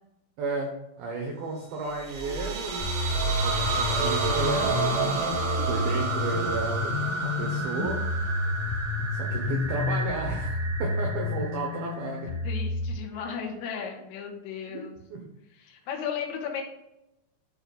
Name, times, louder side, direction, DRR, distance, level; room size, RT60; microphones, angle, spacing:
voice 1, 0.4-0.7 1.0-2.8 3.1-5.1 5.7-8.0 9.1-12.3 14.7-14.8 15.1-15.3, right 3 dB, 85° right, 0 dB, 2.1 m, -33 dB
sound 1, 1.9-12.5, right 4 dB, 65° right, 3.0 m, -31 dB
sound 2, 2.8-12.9, left 3 dB, 45° left, 4.0 m, -30 dB
voice 2, 12.4-14.9 15.5-16.6, left 7 dB, 80° left, 1 dB, 3.7 m, -35 dB
13.5 x 5.3 x 2.4 m, 0.91 s
omnidirectional pair, 6.0 m